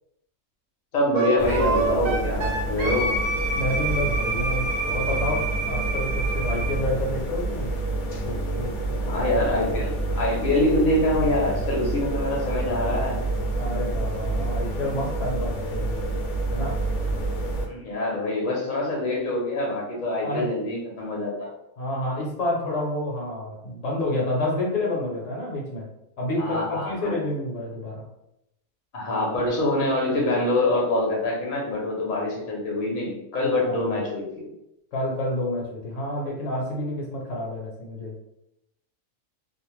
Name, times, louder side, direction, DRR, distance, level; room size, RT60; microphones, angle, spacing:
voice 1, 0.9-3.1 9.1-13.2 17.7-21.5 26.4-27.1 28.9-34.4, left 1 dB, 45° left, -3 dB, 0.7 m, -25 dB
Wind instrument woodwind instrument, 1.1-6.8, right 3 dB, 75° right, 0.9 m, -28 dB
sound 1, 1.4-17.7, right 2 dB, 85° left, 0.4 m, -28 dB
voice 2, 3.5-7.7 8.2-9.1 13.6-16.0 16.5-16.8 20.2-20.5 21.8-25.9 26.2-28.0 33.4-33.9 34.9-38.2, left 1 dB, 65° left, -2 dB, 1.0 m, -29 dB
2.5 x 2.1 x 3.0 m, 0.83 s
omnidirectional pair, 1.5 m